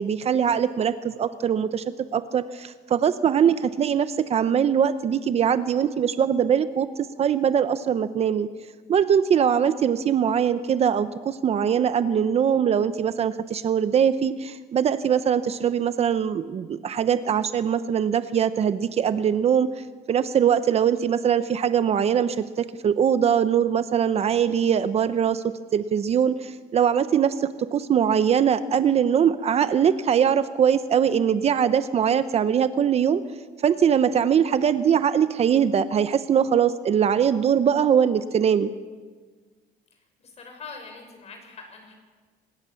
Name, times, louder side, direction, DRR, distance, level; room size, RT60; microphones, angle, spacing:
voice 1, 0.0-1.8 2.1-6.9 7.2-8.5 8.9-25.4 25.7-33.2 33.6-38.7, right 8 dB, 40° right, 12 dB, 0.8 m, -22 dB
voice 2, 39.9-41.9, left 4 dB, 40° left, 4 dB, 6.4 m, -43 dB
25.0 x 20.5 x 7.1 m, 1.5 s
cardioid pair, 135°, 17 cm